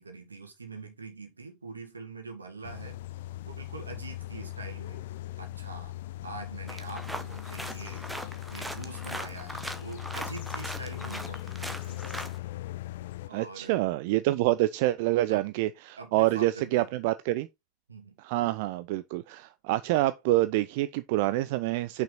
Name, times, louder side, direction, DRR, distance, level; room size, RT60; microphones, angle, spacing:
voice 1, 0.0-3.0 3.5-5.0 5.4-5.9 6.2-8.1 8.5-12.0 13.3-13.8 15.3-15.4 16.0-16.9 17.9-18.2, right 3 dB, 75° right, 1.8 m, -44 dB
sound 1, 2.6-13.3, left 15 dB, 55° left, 0.4 m, -39 dB
sound 2, 6.7-12.4, right 1 dB, 5° right, 1.0 m, -40 dB
voice 2, 13.3-17.5 18.2-22.0, right 16 dB, 50° right, 0.4 m, -27 dB
6.0 x 4.7 x 3.9 m
figure-of-eight pair, 90°, 0 cm